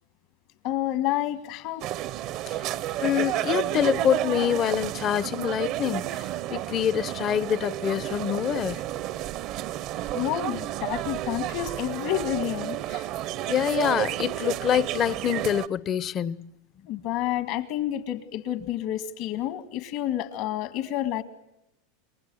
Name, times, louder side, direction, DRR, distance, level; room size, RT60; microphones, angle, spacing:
voice 1, 0.6-1.9 2.2-2.3 10.1-13.1 16.9-21.2, left 12 dB, 60° left, 1.9 m, -29 dB
sound 1, 1.8-15.7, right 14 dB, 50° right, 0.8 m, -31 dB
voice 2, 3.0-6.2 6.5-8.8 13.5-16.5, left 10 dB, 35° left, 0.8 m, -26 dB
29.0 x 22.0 x 6.4 m
supercardioid pair, 120°, 0 cm